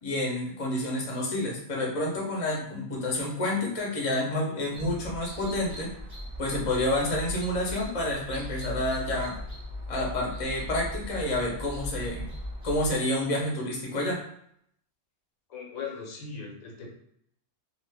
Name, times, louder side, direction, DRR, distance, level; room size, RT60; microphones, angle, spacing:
voice 1, 0.0-5.9 6.4-9.4 9.9-12.3 12.6-14.2, left 1 dB, 35° left, -3 dB, 0.6 m, -29 dB
sound 1, 4.7-12.9, left 1 dB, 30° right, 0.9 m, -38 dB
voice 2, 15.5-16.9, left 5 dB, 80° left, -1 dB, 1.2 m, -38 dB
2.5 x 2.4 x 3.3 m, 0.69 s
omnidirectional pair, 1.4 m